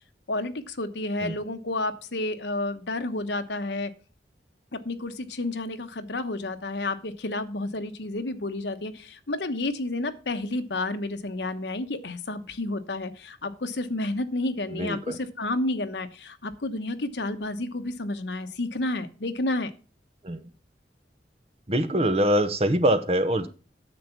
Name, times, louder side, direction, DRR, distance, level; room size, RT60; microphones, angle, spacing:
voice 1, 0.3-3.9 4.7-19.7, left 2 dB, 75° left, 8 dB, 1.1 m, -30 dB
voice 2, 14.7-15.2 20.2-20.5 21.7-23.5, right 1 dB, 35° right, 10 dB, 1.0 m, -24 dB
9.4 x 7.0 x 5.8 m, 0.34 s
head